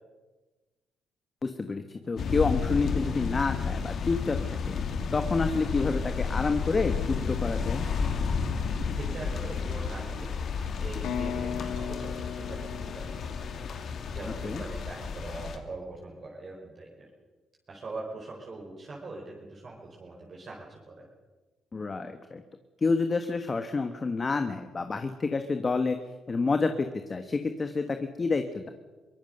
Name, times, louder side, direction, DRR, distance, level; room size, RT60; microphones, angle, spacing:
voice 1, 1.4-4.8 5.1-7.8 14.4-14.6 21.7-22.4 22.8-26.0 26.3-28.7, left 4 dB, 30° left, 7 dB, 1.4 m, -29 dB
sound 1, 2.2-15.6, left 5 dB, 60° left, 2.4 m, -31 dB
voice 2, 8.8-10.3 10.8-13.6 14.1-16.9 17.7-21.1, right 2 dB, 45° right, -3 dB, 5.1 m, -42 dB
sound 2, 11.0-14.8, left 8 dB, 85° left, 2.1 m, -38 dB
23.0 x 19.0 x 6.7 m, 1.2 s
cardioid pair, 90°, 0 cm